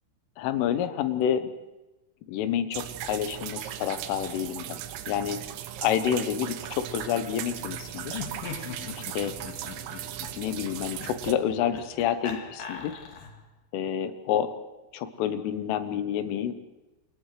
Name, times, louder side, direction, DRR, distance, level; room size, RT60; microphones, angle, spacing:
voice 1, 0.4-1.5 2.3-4.8 5.1-5.4 5.8-8.2 9.2-9.3 10.4-12.9 13.7-14.5 14.9-16.5, left 9 dB, 85° left, 9 dB, 3.5 m, -28 dB
sound 1, 2.7-11.3, right 11 dB, 80° right, 3.2 m, -37 dB
Laughter, 8.1-13.5, left 6 dB, 60° left, 2.7 m, -41 dB
30.0 x 28.5 x 3.3 m, 1.1 s
omnidirectional pair, 5.7 m